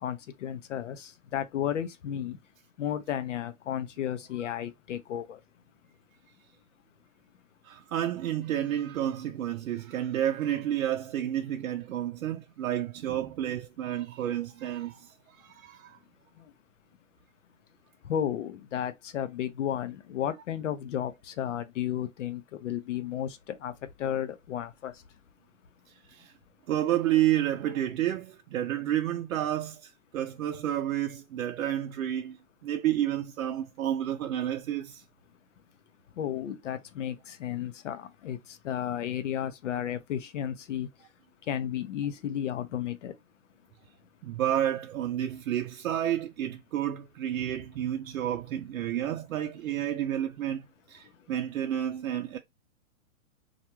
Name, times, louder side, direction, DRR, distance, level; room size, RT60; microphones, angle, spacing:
voice 1, 0.0-2.4 2.8-5.4 16.4-16.5 18.0-23.7 24.0-24.9 36.2-40.9 41.5-43.1, left 10 dB, 65° left, 0.6 m, -33 dB
voice 2, 7.6-16.0 26.1-26.3 26.7-35.0 44.2-52.4, right 11 dB, 85° right, 0.5 m, -30 dB
2.4 x 2.2 x 2.8 m
hypercardioid pair, 155°, 40 cm